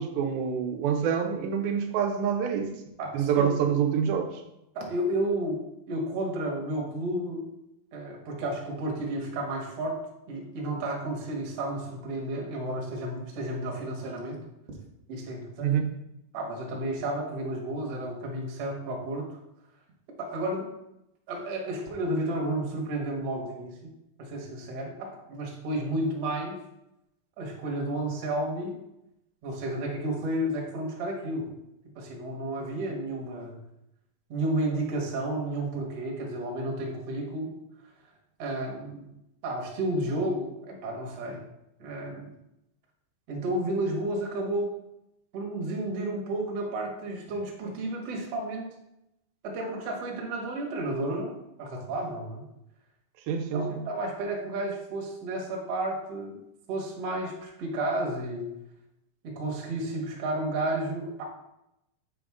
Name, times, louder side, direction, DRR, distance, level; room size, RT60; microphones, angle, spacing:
voice 1, 0.0-2.7 3.1-4.3 15.6-15.9 53.3-53.8, right 7 dB, 85° right, 4 dB, 2.5 m, -26 dB
voice 2, 3.0-3.7 4.8-5.6 5.9-7.5 7.9-10.0 10.3-14.4 15.1-15.7 16.3-19.3 20.2-20.7 21.3-23.8 24.2-26.6 27.4-28.8 29.4-31.5 32.0-33.6 34.3-37.5 38.4-39.1 39.4-41.4 41.8-42.3 43.3-44.7 45.3-48.7 49.4-52.5 53.5-56.4 56.7-58.5 59.2-61.2, right 1 dB, 55° right, 0 dB, 1.9 m, -32 dB
7.8 x 5.0 x 3.5 m, 0.86 s
omnidirectional pair, 4.1 m